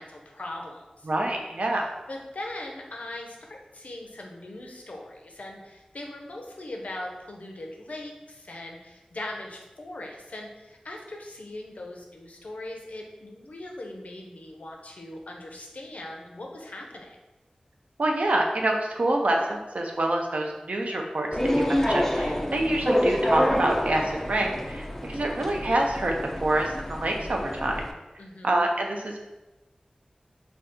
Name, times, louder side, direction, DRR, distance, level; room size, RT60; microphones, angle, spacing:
voice 1, 0.0-1.1 2.1-17.2 28.2-28.7, left 1 dB, 70° left, 1 dB, 0.5 m, -40 dB
voice 2, 1.1-1.9 18.0-21.3 21.5-26.1 26.4-27.8 28.4-29.2, right 1 dB, 65° right, 1 dB, 0.5 m, -26 dB
sound 1, 21.3-27.9, equal, 15° left, 0.3 m, -27 dB
2.6 x 2.3 x 3.5 m, 1.0 s
wide cardioid pair, 75°, 3 cm